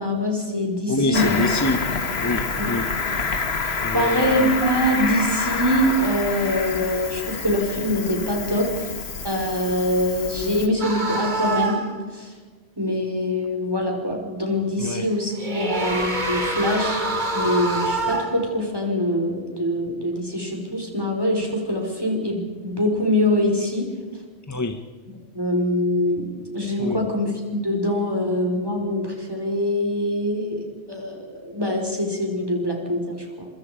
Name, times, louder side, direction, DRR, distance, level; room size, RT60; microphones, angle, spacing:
voice 1, 0.0-1.4 2.6-2.7 3.9-8.9 9.2-11.8 12.1-12.3 12.8-17.1 17.3-23.9 25.3-33.5, left 1 dB, 20° right, 1 dB, 4.9 m, -24 dB
voice 2, 0.9-1.9 2.2-2.9 3.8-4.6 14.8-15.1 24.5-24.9 26.8-27.1, left 2 dB, 15° left, 7 dB, 0.9 m, -26 dB
Cricket, 1.1-10.7, left 4 dB, 65° left, 1.8 m, -27 dB
sound 1, 10.8-12.0 15.1-18.5, right 2 dB, 45° right, 2.3 m, -26 dB
26.5 x 24.5 x 5.1 m, 1.5 s
omnidirectional pair, 1.1 m